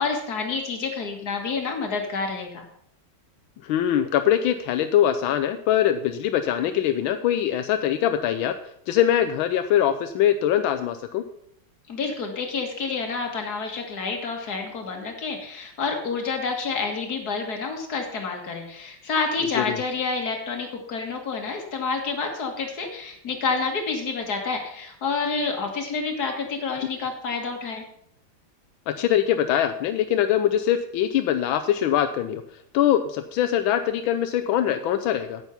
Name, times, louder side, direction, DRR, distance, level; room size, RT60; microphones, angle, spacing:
voice 1, 0.0-2.6 11.9-27.8, left 4 dB, 50° left, 2 dB, 2.2 m, -28 dB
voice 2, 3.6-8.5 8.9-11.2 19.6-19.8 28.9-32.4 32.7-35.4, left 10 dB, 85° left, 9 dB, 1.4 m, -22 dB
9.0 x 8.2 x 5.6 m, 0.69 s
omnidirectional pair, 2.1 m